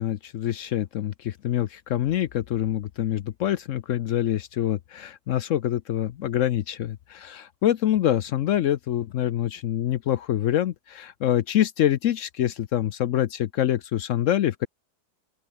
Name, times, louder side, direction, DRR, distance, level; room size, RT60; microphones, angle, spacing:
voice 1, 0.0-14.7, left 11 dB, 70° left, 0.7 m, -25 dB
open air
omnidirectional pair, 1.9 m